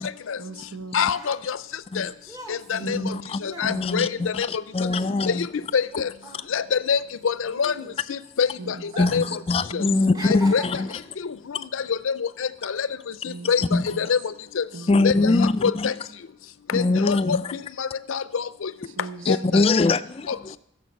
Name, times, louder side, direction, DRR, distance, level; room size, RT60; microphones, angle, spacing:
voice 1, 0.4-1.1 2.7-3.3 3.7-4.3 8.6-9.4 9.7-10.4 13.2-14.1 14.7-15.4 18.9-19.7, right 3 dB, 80° right, 0.9 m, -38 dB
sound 1, 0.7-5.9 6.2-8.3 8.8-9.4 9.7-11.2 11.9-12.1, right 1 dB, 20° right, 0.9 m, -41 dB
voice 2, 0.9-1.6 2.0-2.1 2.5-3.0 3.4-4.1 4.4-4.5 5.3-5.4 5.7-6.1 6.5-7.0 7.2-7.7 8.1-8.5 9.0-9.2 9.7-9.8 10.2-10.6 11.9-12.1 12.6-12.9 13.2-13.6 14.0-14.2 14.6-14.7 15.0-15.3 15.6-15.9 16.7-17.4 17.8-18.7 19.3-19.6, left 6 dB, 85° left, 0.5 m, -24 dB
voice 3, 2.8-3.4 3.7-5.5 9.0-10.9 13.6-13.9 14.9-15.9 16.7-17.4 19.3-20.6, left 3 dB, 30° left, 0.3 m, -23 dB
14.5 x 7.0 x 5.4 m
head